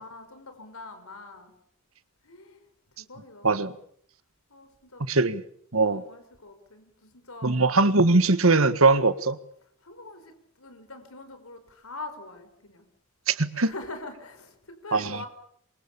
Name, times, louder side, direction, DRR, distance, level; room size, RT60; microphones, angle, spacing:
voice 1, 0.0-1.5 2.2-2.6 2.9-3.7 4.5-5.1 5.9-7.6 9.8-12.9 13.5-15.3, left 2 dB, 85° left, 4.7 m, -43 dB
voice 2, 5.1-5.4 5.7-6.0 7.4-9.4 13.3-13.7 14.9-15.2, right 3 dB, 80° right, 1.7 m, -21 dB
27.0 x 24.0 x 7.2 m
head